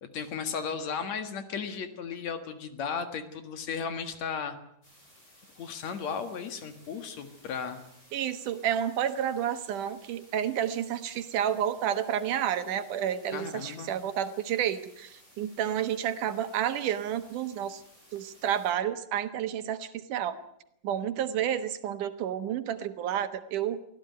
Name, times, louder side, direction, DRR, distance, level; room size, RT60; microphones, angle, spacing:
voice 1, 0.0-4.6 5.6-7.8 13.3-13.9, left 6 dB, 60° left, 9 dB, 2.8 m, -35 dB
sound 1, 4.8-18.7, equal, 20° left, 8.5 m, -58 dB
voice 2, 8.1-17.8 18.1-20.4 20.8-23.8, right 10 dB, 80° right, 10 dB, 2.8 m, -30 dB
24.0 x 15.5 x 9.4 m, 0.76 s
omnidirectional pair, 3.6 m